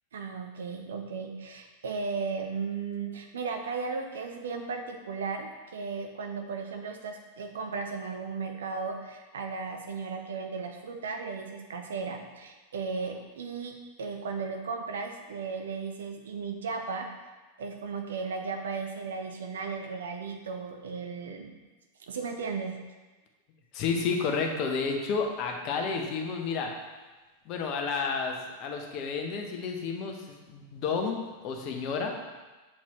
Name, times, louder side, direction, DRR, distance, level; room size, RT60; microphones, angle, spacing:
voice 1, 0.1-17.1 17.6-21.6 22.0-22.8, right 4 dB, 65° right, 4 dB, 0.7 m, -35 dB
voice 2, 23.7-26.7 27.5-32.1, left 5 dB, 40° left, 2 dB, 0.9 m, -31 dB
7.4 x 4.4 x 2.9 m, 1.2 s
figure-of-eight pair, 90°, 0 cm